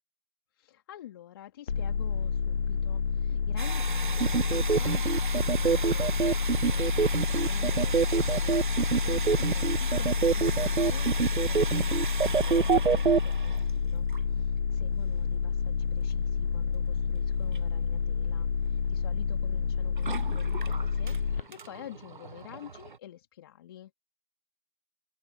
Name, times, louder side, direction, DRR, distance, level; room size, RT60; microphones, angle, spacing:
voice 1, 0.5-24.0, left 12 dB, 20° left, 2.7 m, -48 dB
sound 1, 1.7-21.4, left 6 dB, 55° left, 0.6 m, -29 dB
sound 2, 3.6-13.7 14.1-14.4 14.8-14.9 17.5-17.6 19.9-23.0, right 5 dB, 45° right, 0.5 m, -38 dB
sound 3, 4.2-13.2, right 6 dB, 70° right, 0.8 m, -25 dB
open air
figure-of-eight pair, 160°, 34 cm